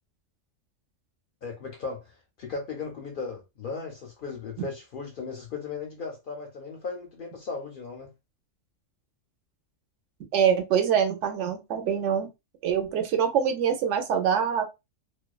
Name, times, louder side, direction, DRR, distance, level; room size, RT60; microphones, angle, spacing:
voice 1, 1.4-8.1, left 4 dB, 60° left, 0.6 m, -37 dB
voice 2, 10.3-12.3 12.6-14.6, right 8 dB, 75° right, 0.9 m, -24 dB
2.5 x 2.1 x 2.3 m
omnidirectional pair, 1.3 m